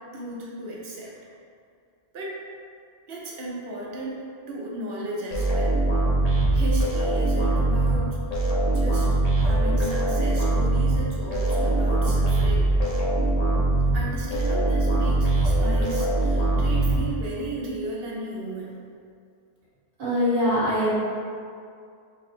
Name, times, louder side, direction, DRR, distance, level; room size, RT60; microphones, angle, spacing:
voice 1, 0.1-1.1 2.1-2.4 3.1-5.8 6.5-8.1 8.7-12.7 13.9-18.8, right 1 dB, 70° right, -4 dB, 0.9 m, -35 dB
sound 1, 5.3-17.5, right 2 dB, 45° left, 0.6 m, -22 dB
voice 2, 20.0-20.9, equal, 55° right, -12 dB, 1.6 m, -22 dB
3.7 x 2.0 x 4.2 m, 2.3 s
omnidirectional pair, 1.1 m